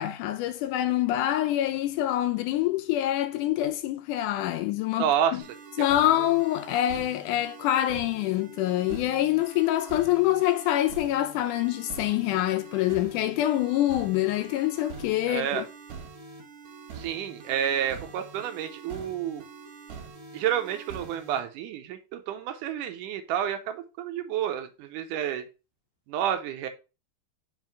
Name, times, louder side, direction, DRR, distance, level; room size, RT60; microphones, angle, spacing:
voice 1, 0.0-5.4 5.8-15.6, left 14 dB, 80° left, 1.9 m, -26 dB
voice 2, 5.0-5.4 15.3-15.6 17.0-19.4 20.3-25.4 26.1-26.7, right 9 dB, 80° right, 2.0 m, -29 dB
sound 1, 5.4-21.4, right 5 dB, 60° right, 2.6 m, -44 dB
5.6 x 4.6 x 4.5 m
omnidirectional pair, 3.9 m